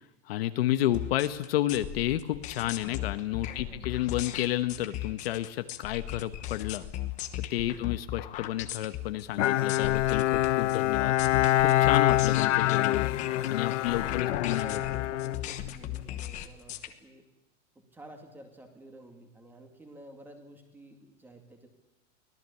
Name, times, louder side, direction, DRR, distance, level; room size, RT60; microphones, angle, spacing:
voice 1, 0.3-6.8 7.5-11.2 11.6-13.1 13.5-15.0, left 13 dB, 50° left, 10 dB, 1.2 m, -31 dB
sound 1, 0.9-16.9, left 13 dB, 20° left, 1.2 m, -37 dB
voice 2, 3.5-4.0 7.5-7.9 13.7-17.2 17.9-21.7, right 1 dB, 5° right, 5 dB, 2.4 m, -51 dB
Bowed string instrument, 9.4-16.1, left 14 dB, 75° left, 1.0 m, -26 dB
24.5 x 18.0 x 8.4 m, 1.0 s
supercardioid pair, 180°, 37 cm